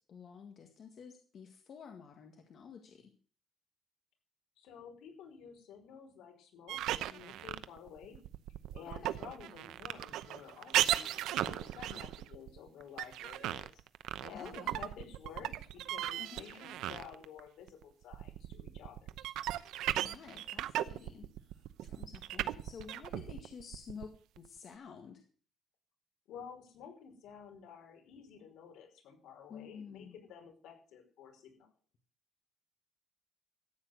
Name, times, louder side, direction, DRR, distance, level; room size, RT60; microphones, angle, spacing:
voice 1, 0.1-3.1 8.9-9.1 14.3-14.9 16.2-16.5 20.0-25.2 29.5-30.2, left 6 dB, 45° left, 4 dB, 1.9 m, -51 dB
voice 2, 4.6-6.8 7.1-8.2 8.7-13.7 14.2-19.3 26.3-31.7, left 7 dB, 75° left, 3 dB, 5.2 m, -52 dB
sound 1, 6.7-17.4 17.7-24.5, right 13 dB, 80° right, 0.8 m, -37 dB
14.0 x 8.9 x 6.7 m, 0.42 s
cardioid pair, 150°, 0 cm